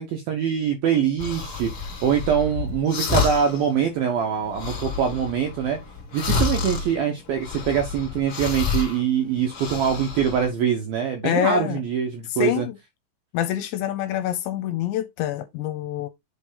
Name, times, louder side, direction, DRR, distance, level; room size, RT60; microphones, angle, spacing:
voice 1, 0.0-5.8 6.1-12.7, right 8 dB, 75° right, 2.2 m, -24 dB
sound 1, 1.2-3.7 4.0-4.1 4.4-9.0 9.4-10.5, left 4 dB, 45° left, 2.0 m, -29 dB
voice 2, 11.2-11.8 12.3-12.8 13.3-16.1, left 11 dB, 75° left, 2.9 m, -26 dB
7.9 x 3.3 x 5.5 m
omnidirectional pair, 5.7 m